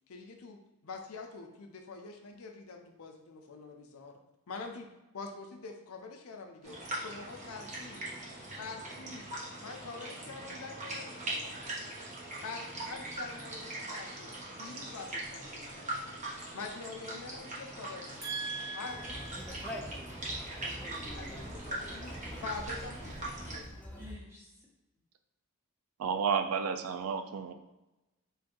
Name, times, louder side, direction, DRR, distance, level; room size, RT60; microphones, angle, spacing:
voice 1, 0.1-4.1 4.5-4.9 5.1-8.0 8.6-9.3 9.6-11.6 12.4-16.2 16.5-18.2 18.7-19.0 21.1-23.7, left 4 dB, 70° left, 3 dB, 0.5 m, -45 dB
sound 1, 6.6-23.6, right 1 dB, 35° right, 1.0 m, -41 dB
voice 2, 18.2-19.8 24.0-24.5, right 3 dB, 10° right, -5 dB, 1.2 m, -41 dB
Conversation, 18.9-24.2, equal, 5° left, 0.4 m, -45 dB
voice 3, 26.0-27.5, right 6 dB, 70° right, 8 dB, 0.3 m, -31 dB
3.9 x 2.5 x 3.7 m, 1.0 s
head